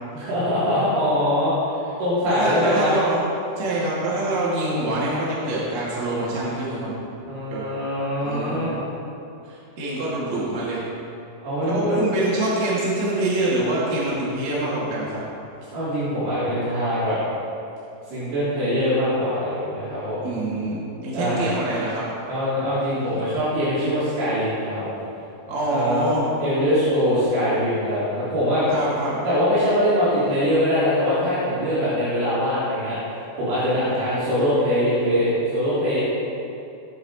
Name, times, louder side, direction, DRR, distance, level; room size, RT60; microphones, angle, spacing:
voice 1, 0.1-1.5 2.0-2.9 7.3-8.8 11.4-12.0 15.7-17.2 18.1-20.2 21.1-21.5 22.3-24.9 25.7-26.1 26.4-28.7 29.3-36.0, equal, 75° right, -12 dB, 6.0 m, -23 dB
voice 2, 2.2-3.2 3.6-6.9 7.5-7.6 8.2-8.7 9.4-10.8 11.6-15.2 20.2-22.1 25.5-26.3 28.7-29.2, right 2 dB, 45° right, -7 dB, 3.1 m, -25 dB
18.0 x 11.0 x 3.2 m, 2.7 s
omnidirectional pair, 5.6 m